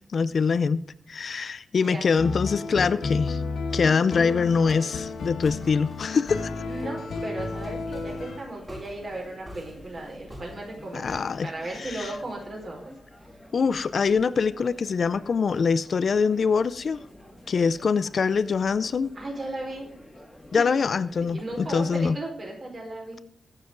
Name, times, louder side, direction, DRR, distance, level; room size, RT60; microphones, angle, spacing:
voice 1, 0.1-0.8 1.1-3.4 3.7-6.5 10.9-11.5 11.8-12.1 13.5-17.0 17.5-19.1 20.5-22.2, left 5 dB, 50° left, 0.5 m, -24 dB
sound 1, 2.2-8.4, left 4 dB, 90° left, 1.8 m, -32 dB
Walk footsteps, 4.5-12.4, equal, 10° right, 3.2 m, -48 dB
sound 2, 6.1-22.1, left 1 dB, 5° left, 2.1 m, -49 dB
voice 2, 6.6-12.8 19.1-19.9 20.5-20.6 21.3-23.2, right 2 dB, 40° right, 4.9 m, -36 dB
21.5 x 7.4 x 3.9 m
wide cardioid pair, 165°, 0 cm